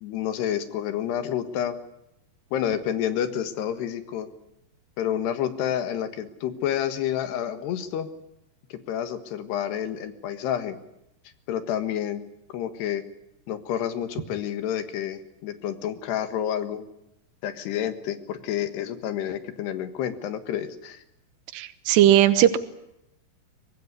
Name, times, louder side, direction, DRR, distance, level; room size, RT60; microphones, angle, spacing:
voice 1, 0.0-1.8 2.5-4.3 5.0-8.1 8.7-10.8 11.5-12.2 12.5-13.0 13.5-16.8 17.4-21.0, left 10 dB, 80° left, 10 dB, 3.7 m, -29 dB
voice 2, 21.5-22.6, right 12 dB, 90° right, 12 dB, 3.3 m, -18 dB
24.0 x 18.5 x 9.7 m, 0.84 s
omnidirectional pair, 4.7 m